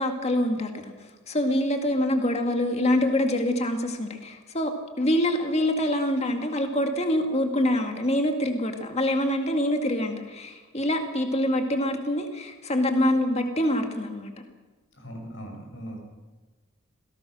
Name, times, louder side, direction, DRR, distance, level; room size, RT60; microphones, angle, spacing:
voice 1, 0.0-14.3, left 1 dB, 30° left, 5 dB, 2.0 m, -25 dB
voice 2, 15.0-16.0, equal, 60° left, 2 dB, 6.6 m, -39 dB
26.5 x 18.0 x 6.3 m, 1.2 s
head